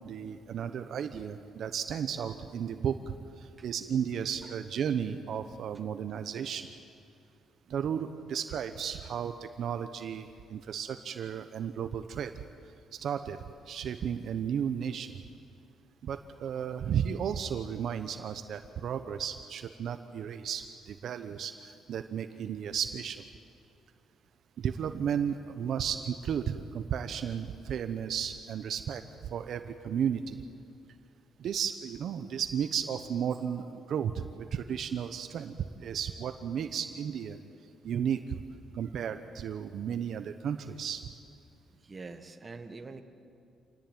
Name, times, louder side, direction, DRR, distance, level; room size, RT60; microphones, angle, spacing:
voice 1, 0.0-6.7 7.7-12.3 12.9-13.4 13.7-15.1 16.0-23.2 24.6-30.4 31.4-35.5 35.8-37.4 37.8-38.4 38.7-41.0, right 8 dB, 55° right, 9 dB, 0.9 m, -34 dB
voice 2, 41.8-43.0, right 3 dB, 20° right, 6 dB, 1.4 m, -44 dB
27.0 x 17.5 x 9.1 m, 2.5 s
cardioid pair, 160°, 0 cm